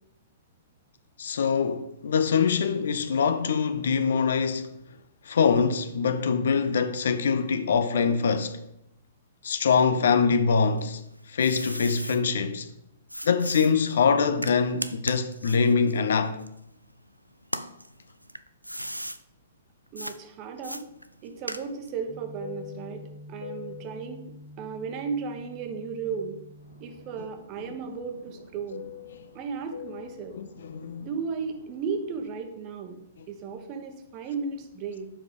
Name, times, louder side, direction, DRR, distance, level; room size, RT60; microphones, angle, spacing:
voice 1, 1.2-4.8 5.3-8.6 9.4-11.0 11.3-12.7 13.2-16.4 30.3-31.1, left 5 dB, 60° left, 0.6 m, -24 dB
sound 1, 10.8-12.2 13.1-17.0 17.4-19.2 20.0-20.2 20.6-22.0, equal, 90° right, 0.4 m, -37 dB
voice 2, 19.9-20.8 21.2-23.0 23.3-26.4 26.8-28.8 29.3-30.4 31.0-33.0 33.3-35.1, right 5 dB, 30° right, 1.1 m, -35 dB
Fixed-wing aircraft airplane, 20.8-26.2 26.5-32.3, left 8 dB, 80° left, 1.5 m, -47 dB
sound 2, 22.1-27.2, equal, 15° left, 2.0 m, -47 dB
7.1 x 4.8 x 5.1 m
figure-of-eight pair, 110°, 0 cm